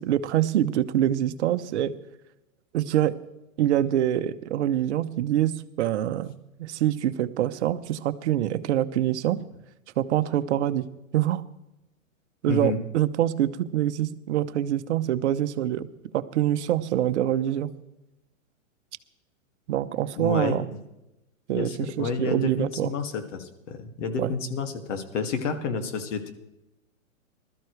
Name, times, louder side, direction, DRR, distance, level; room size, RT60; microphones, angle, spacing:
voice 1, 0.0-1.9 2.7-3.1 3.6-9.4 10.0-10.8 11.1-11.4 12.4-15.9 16.1-17.7 19.7-20.7 21.5-22.9 24.2-24.3, right 12 dB, 55° right, 13 dB, 0.9 m, -25 dB
voice 2, 12.5-12.8 20.2-20.8 21.5-26.3, left 4 dB, 60° left, 6 dB, 2.3 m, -30 dB
20.5 x 13.5 x 3.3 m, 0.93 s
hypercardioid pair, 130°, 41 cm